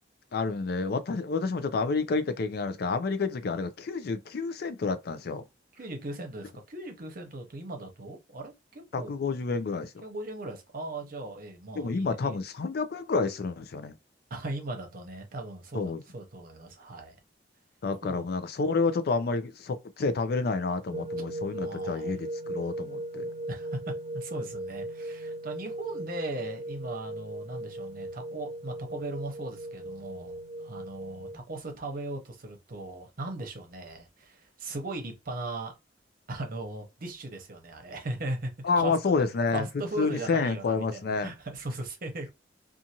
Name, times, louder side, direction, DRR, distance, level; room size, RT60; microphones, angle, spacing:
voice 1, 0.3-5.4 8.9-9.9 11.8-13.9 15.7-16.0 17.8-23.3 38.6-39.7 40.0-41.3, left 4 dB, 60° left, 0.4 m, -29 dB
voice 2, 5.8-9.1 10.0-12.4 14.3-17.2 18.0-18.2 21.6-22.1 23.5-35.7 36.3-39.0 39.5-42.3, right 2 dB, 50° right, 0.8 m, -38 dB
sound 1, 20.9-31.4, right 1 dB, 35° right, 0.4 m, -38 dB
2.6 x 2.4 x 2.8 m
head